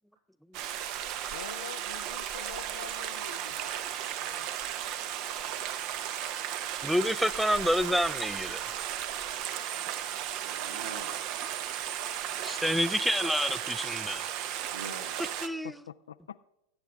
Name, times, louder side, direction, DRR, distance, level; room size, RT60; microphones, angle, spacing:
Stream, 0.5-15.5, right 10 dB, 50° right, 0.7 m, -35 dB
voice 1, 1.3-4.5 15.6-16.4, left 9 dB, 75° left, 0.4 m, -46 dB
voice 2, 6.8-8.8 12.4-14.3 15.4-15.8, equal, ahead, 0.4 m, -28 dB
voice 3, 10.4-11.3 14.7-15.2, right 4 dB, 80° right, 1.3 m, -45 dB
19.5 x 8.3 x 3.5 m
hypercardioid pair, 95°, 0 cm